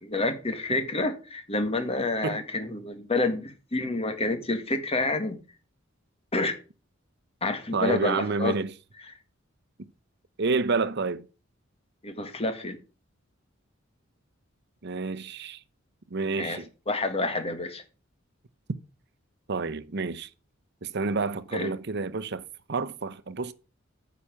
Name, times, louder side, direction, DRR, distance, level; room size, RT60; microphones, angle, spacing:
voice 1, 0.0-5.4 6.3-6.6 7.4-8.5 12.0-12.8 16.3-17.8 21.5-21.7, left 2 dB, 30° left, 1.8 m, -28 dB
voice 2, 7.7-8.7 10.4-11.3 14.8-15.6 16.1-16.7 19.5-20.3 20.8-22.4 22.7-23.5, right 4 dB, 55° right, 0.8 m, -29 dB
9.7 x 6.0 x 7.1 m
head